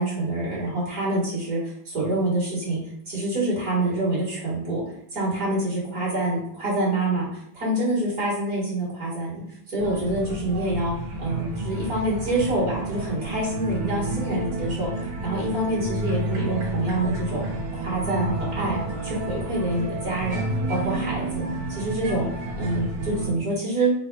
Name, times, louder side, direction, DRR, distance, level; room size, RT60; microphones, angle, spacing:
voice 1, 0.0-2.8 3.1-4.8 5.1-10.9 11.2-17.4 17.7-21.4 21.7-22.3 22.6-23.9, right 1 dB, 45° right, -6 dB, 1.9 m, -26 dB
sound 1, 9.8-23.3, right 2 dB, 65° right, 1.3 m, -30 dB
4.1 x 2.1 x 4.4 m, 0.72 s
omnidirectional pair, 2.3 m